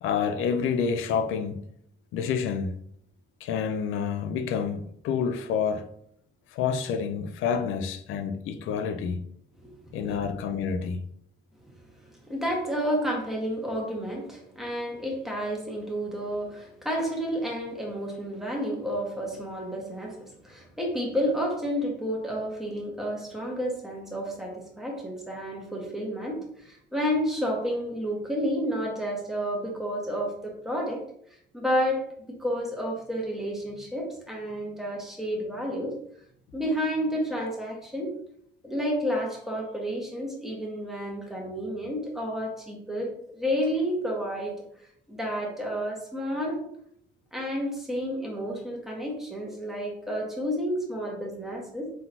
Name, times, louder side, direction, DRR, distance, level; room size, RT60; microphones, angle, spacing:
voice 1, 0.0-1.6 2.1-2.7 3.4-5.9 6.5-9.2 9.9-11.0, left 6 dB, 90° left, 0.5 m, -28 dB
voice 2, 9.6-10.2 12.0-31.1 31.5-32.1 32.4-36.0 36.5-38.1 38.6-44.5 45.1-46.6 47.3-51.9, equal, ahead, 1.5 m, -30 dB
3.9 x 3.9 x 2.8 m
cardioid pair, 90°, 20 cm